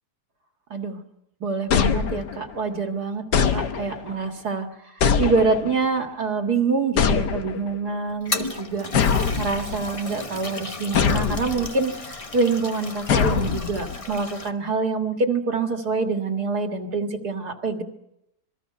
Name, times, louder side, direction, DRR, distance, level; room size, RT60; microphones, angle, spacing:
voice 1, 1.4-4.7 5.2-17.8, right 4 dB, 65° right, 5 dB, 2.3 m, -26 dB
sound 1, 1.7-2.6 3.3-4.1 5.0-5.9 7.0-7.8 8.9-10.0 10.9-11.7 13.1-14.0, left 7 dB, 75° left, 1.7 m, -23 dB
Toilet flush, 8.1-14.5, left 3 dB, 25° left, 1.0 m, -34 dB
27.0 x 20.5 x 5.8 m, 0.83 s
omnidirectional pair, 1.8 m